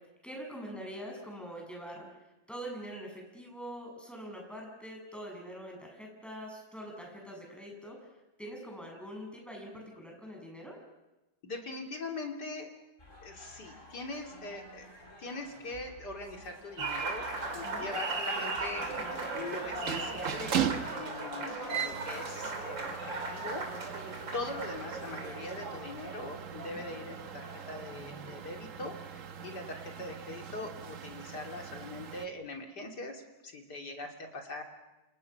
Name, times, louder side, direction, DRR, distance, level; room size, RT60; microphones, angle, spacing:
voice 1, 0.2-2.1 2.5-8.1 8.4-10.8 17.6-17.9 26.6-26.8, equal, ahead, 0 dB, 7.5 m, -44 dB
voice 2, 11.4-12.7 13.2-14.9 15.2-17.3 17.5-34.6, left 2 dB, 60° left, 3 dB, 3.5 m, -42 dB
sound 1, 13.0-20.6, equal, 25° left, 4.9 m, -53 dB
Applause, 16.8-28.5, right 3 dB, 85° right, 3.8 m, -38 dB
sound 2, 17.3-32.3, right 9 dB, 50° right, 1.3 m, -40 dB
28.0 x 28.0 x 6.0 m, 1.0 s
omnidirectional pair, 2.0 m